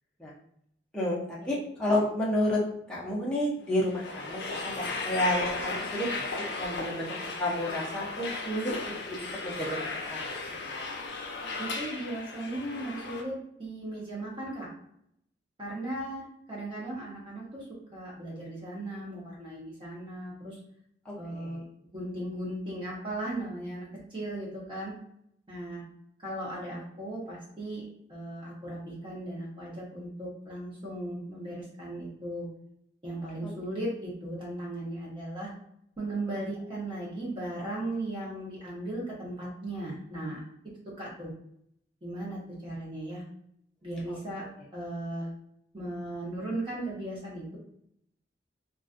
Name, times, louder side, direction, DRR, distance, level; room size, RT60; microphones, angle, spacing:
voice 1, 0.9-8.7 9.1-9.8 10.1-10.2 21.1-21.6 33.4-33.5 44.1-44.2, left 1 dB, 5° left, -7 dB, 0.5 m, -31 dB
sound 1, 3.7-13.2, left 3 dB, 70° left, 0.4 m, -36 dB
voice 2, 11.6-13.3 13.6-14.7 15.6-17.6 17.9-20.6 21.2-21.6 21.9-24.9 25.5-25.9 26.2-27.8 28.1-32.5 33.0-35.5 36.0-40.5 41.0-41.3 42.0-43.2 43.8-44.4 44.7-45.3 45.7-47.4, right 1 dB, 30° right, -5 dB, 0.8 m, -37 dB
2.4 x 2.2 x 2.4 m, 0.73 s
head